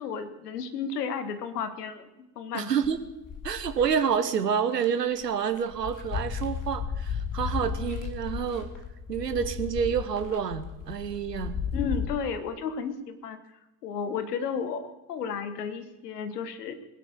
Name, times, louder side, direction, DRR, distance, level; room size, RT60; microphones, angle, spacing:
voice 1, 0.0-2.7 11.7-13.4 13.8-16.8, left 6 dB, 75° left, 11 dB, 1.4 m, -33 dB
voice 2, 2.5-3.0 3.4-8.7 9.1-11.6, right 7 dB, 80° right, 10 dB, 1.1 m, -28 dB
sound 1, 2.8-4.0 4.7-4.9 5.2-12.1, left 6 dB, 40° left, 2.8 m, -34 dB
21.5 x 8.3 x 7.6 m, 1.0 s
figure-of-eight pair, 55°, 48 cm